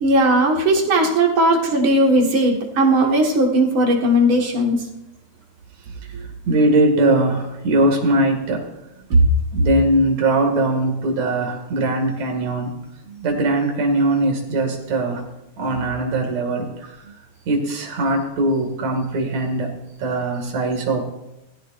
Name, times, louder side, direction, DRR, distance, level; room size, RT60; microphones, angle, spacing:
voice 1, 0.0-4.8 9.1-9.2, right 1 dB, 50° right, 0 dB, 2.3 m, -17 dB
voice 2, 6.1-8.6 9.5-12.7 13.2-15.2 15.6-16.9 17.5-19.7 20.0-21.0, right 2 dB, 65° right, 1 dB, 3.4 m, -20 dB
18.0 x 14.5 x 2.5 m, 0.91 s
omnidirectional pair, 3.4 m